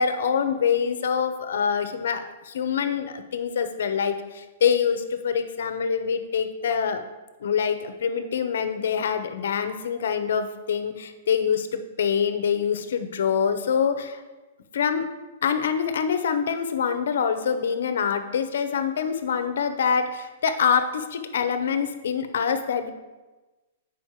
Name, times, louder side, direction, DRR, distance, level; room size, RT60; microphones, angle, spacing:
voice 1, 0.0-7.0 7.4-14.2 14.7-15.1 15.4-22.9, left 7 dB, 75° left, 8 dB, 0.9 m, -25 dB
8.4 x 5.1 x 4.9 m, 1.2 s
hypercardioid pair, 155°, 0 cm